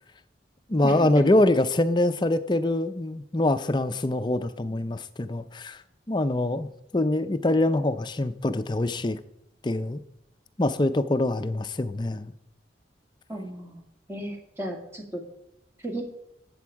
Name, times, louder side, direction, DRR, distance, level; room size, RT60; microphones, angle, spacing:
voice 1, 0.7-5.8 6.1-9.2 9.6-10.0 10.6-12.3, left 1 dB, 25° left, 12 dB, 0.5 m, -24 dB
voice 2, 13.3-13.8 14.1-15.2 15.8-16.0, right 1 dB, 15° right, 1 dB, 2.0 m, -34 dB
13.0 x 8.5 x 4.7 m, 0.80 s
head